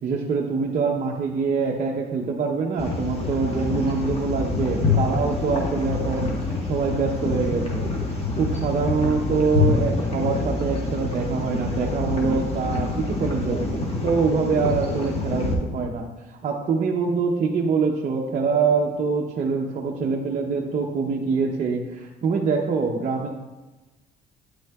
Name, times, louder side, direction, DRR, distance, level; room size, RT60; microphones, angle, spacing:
voice 1, 0.0-6.3 6.6-7.9 8.4-16.1 16.4-23.3, right 5 dB, 45° right, -1 dB, 0.7 m, -24 dB
sound 1, 2.8-15.5, left 3 dB, 35° left, 1.4 m, -26 dB
9.7 x 6.2 x 2.3 m, 1.1 s
cardioid pair, 110°, 17 cm